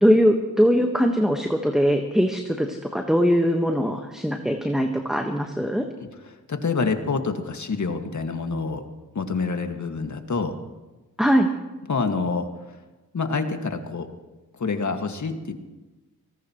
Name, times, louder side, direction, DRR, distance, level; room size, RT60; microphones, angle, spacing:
voice 1, 0.0-5.8 11.2-11.5, equal, ahead, 3 dB, 1.5 m, -21 dB
voice 2, 6.2-8.8 9.1-10.5 11.9-12.5 13.1-14.1 14.6-15.5, left 4 dB, 45° left, 5 dB, 2.1 m, -27 dB
25.0 x 18.0 x 3.2 m, 1.1 s
cardioid pair, 60°, 39 cm